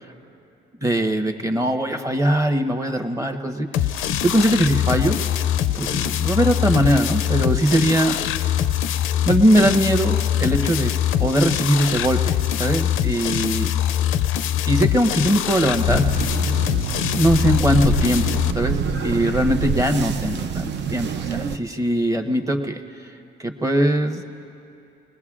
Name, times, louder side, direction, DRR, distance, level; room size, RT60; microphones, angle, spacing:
voice 1, 0.8-3.7 4.2-5.2 5.7-8.2 9.2-10.9 11.2-13.7 14.6-16.0 17.1-22.8 23.4-24.2, right 1 dB, 15° right, 5 dB, 1.1 m, -21 dB
sound 1, 3.7-18.5, left 11 dB, 85° left, 0.4 m, -23 dB
sound 2, 15.9-21.6, right 6 dB, 60° right, 0.6 m, -26 dB
24.5 x 20.0 x 2.5 m, 2.6 s
cardioid pair, 90°, 20 cm